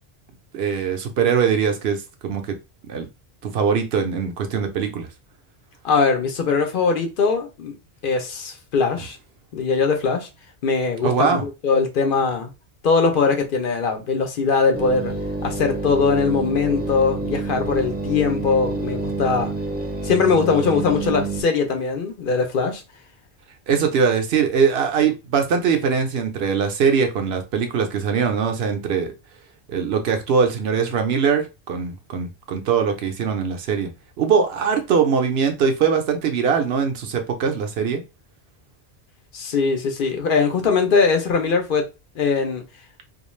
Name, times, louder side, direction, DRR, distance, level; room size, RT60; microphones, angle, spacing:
voice 1, 0.5-2.6 2.9-3.1 3.4-5.1 11.0-11.4 23.7-29.1 29.7-33.9 34.2-38.0, right 6 dB, 75° right, 0.8 m, -21 dB
voice 2, 5.8-7.7 8.0-9.2 9.5-10.3 10.6-12.5 12.8-15.1 15.4-19.5 20.0-22.8 39.3-42.6, left 5 dB, 60° left, 0.7 m, -21 dB
sound 1, 14.7-21.4, right 3 dB, 15° right, 0.5 m, -28 dB
2.4 x 2.3 x 3.1 m
omnidirectional pair, 1.1 m